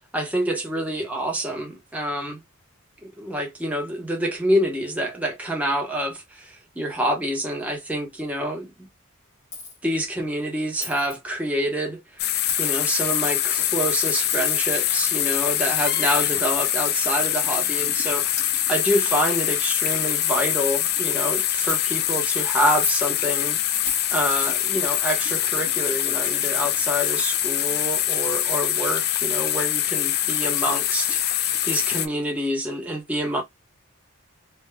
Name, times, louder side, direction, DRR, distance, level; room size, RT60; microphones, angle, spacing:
voice 1, 0.1-2.4 3.0-8.7 9.8-23.6 24.1-33.4, equal, 5° right, 0.9 m, -27 dB
Coin (dropping), 9.5-9.8 10.8-11.2 12.5-12.7 14.3-14.6 16.1-16.3 17.2-17.3 18.0-18.1 18.4-18.5 19.2-19.3 19.5-19.6 19.9-20.0 20.5-20.8 21.7-21.8 22.7-23.1 23.9-24.1 24.9-25.3 26.9-27.0 27.7-27.8, left 3 dB, 35° left, 1.6 m, -32 dB
sound 1, 12.2-32.1, left 11 dB, 50° left, 0.4 m, -24 dB
3.3 x 2.8 x 2.2 m
head